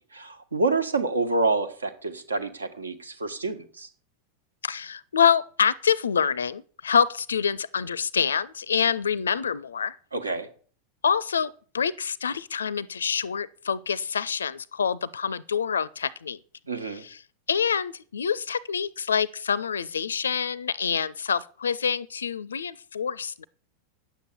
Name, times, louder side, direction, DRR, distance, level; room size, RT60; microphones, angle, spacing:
voice 1, 0.1-3.9 10.1-10.5 16.7-17.0, right 3 dB, 75° right, 1.5 m, -27 dB
voice 2, 4.6-10.0 11.0-16.4 16.8-17.2 17.5-23.4, left 7 dB, 70° left, 0.4 m, -26 dB
10.0 x 8.3 x 6.9 m
figure-of-eight pair, 90°, 0 cm